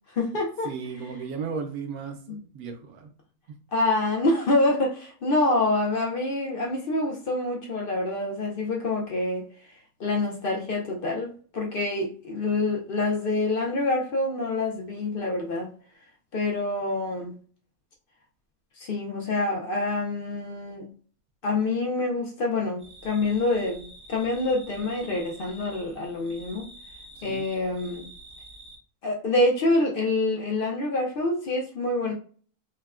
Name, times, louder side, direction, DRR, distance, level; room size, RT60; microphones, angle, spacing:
voice 1, 0.1-0.7 2.3-2.4 3.7-9.5 10.0-15.7 16.3-17.3 18.8-20.9 21.4-26.6 27.2-28.1 29.0-32.1, left 2 dB, 65° left, 0.5 m, -26 dB
voice 2, 0.6-3.1 27.2-27.5, right 5 dB, 75° right, 1.1 m, -35 dB
sound 1, 22.8-28.8, right 1 dB, 35° right, 0.4 m, -48 dB
3.4 x 2.1 x 2.3 m
omnidirectional pair, 1.6 m